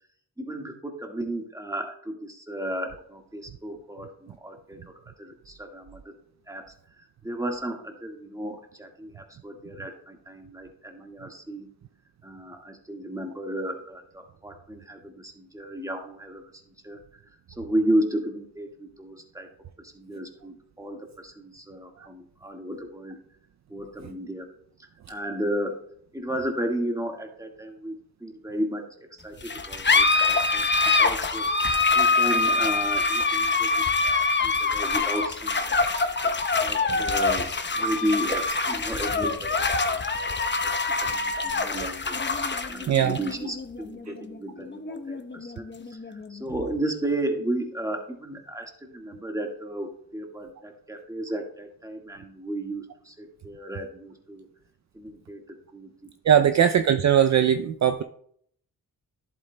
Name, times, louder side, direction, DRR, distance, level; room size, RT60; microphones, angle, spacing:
voice 1, 0.4-6.1 6.5-11.7 12.2-17.2 17.5-19.5 19.8-23.2 23.7-24.5 24.8-25.8 26.1-27.9 28.2-30.7 31.0-31.5 31.9-35.8 36.6-42.2 42.7-54.5 54.9-56.1, right 1 dB, 10° right, 3 dB, 1.6 m, -33 dB
sound 1, 29.4-46.4, left 3 dB, 30° left, 0.9 m, -25 dB
voice 2, 42.9-43.2 56.2-58.0, right 9 dB, 45° right, 8 dB, 0.5 m, -20 dB
11.0 x 7.8 x 2.2 m, 0.66 s
cardioid pair, 55°, 38 cm